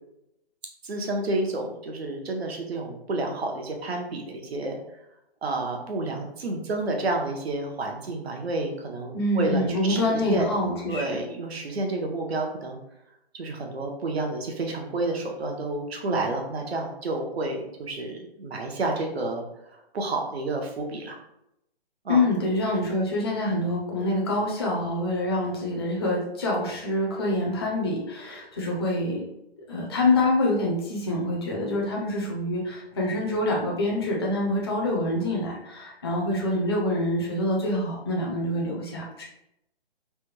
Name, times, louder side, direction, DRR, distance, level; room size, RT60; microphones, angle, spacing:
voice 1, 0.8-4.8 5.4-10.5 10.9-12.8 13.3-19.4 19.7-21.2 22.0-22.2, right 2 dB, 75° right, 2 dB, 0.9 m, -30 dB
voice 2, 9.1-11.1 22.1-29.2 29.7-39.3, left 1 dB, 25° left, -3 dB, 0.4 m, -26 dB
3.3 x 2.2 x 3.1 m, 0.83 s
hypercardioid pair, 160°, 31 cm